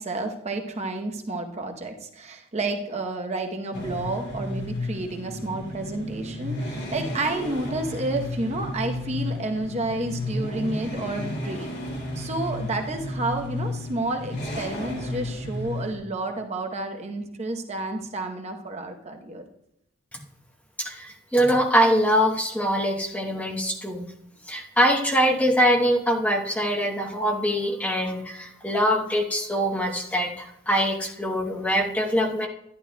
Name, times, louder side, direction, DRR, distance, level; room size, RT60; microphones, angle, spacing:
voice 1, 0.0-11.8 12.2-19.4, right 2 dB, 35° right, 3 dB, 0.9 m, -30 dB
sound 1, 3.7-15.9, left 1 dB, 55° left, 2.5 m, -33 dB
voice 2, 20.8-24.1 24.5-32.5, equal, 5° left, 2 dB, 0.9 m, -23 dB
11.5 x 10.5 x 2.2 m, 0.78 s
head